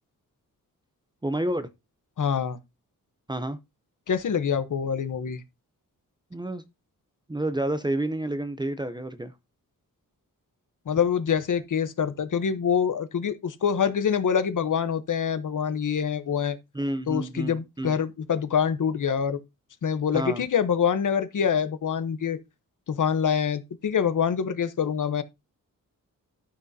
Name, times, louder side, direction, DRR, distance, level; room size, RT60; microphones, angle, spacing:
voice 1, 1.2-1.7 3.3-3.6 6.3-6.6 7.3-9.3 16.7-18.0 20.1-20.4, right 1 dB, 15° right, 0.6 m, -29 dB
voice 2, 2.2-2.6 4.1-5.4 10.9-16.6 17.1-19.4 19.8-22.4 22.9-25.2, left 7 dB, 65° left, 1.0 m, -25 dB
12.5 x 6.1 x 2.7 m
wide cardioid pair, 165°, 33 cm